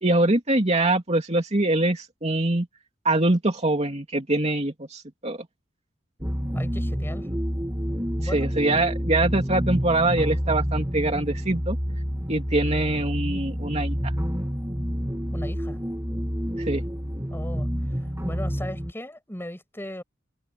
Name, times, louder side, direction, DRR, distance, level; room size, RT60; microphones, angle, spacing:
voice 1, 0.0-2.7 3.0-5.4 8.3-11.8 12.3-14.1 16.6-16.8, right 2 dB, 35° right, 2.7 m, -23 dB
sound 1, 6.2-18.9, equal, 15° right, 3.2 m, -28 dB
voice 2, 6.5-7.3 8.2-8.5 15.3-15.8 17.3-17.7 18.2-20.0, left 1 dB, 10° left, 6.5 m, -37 dB
head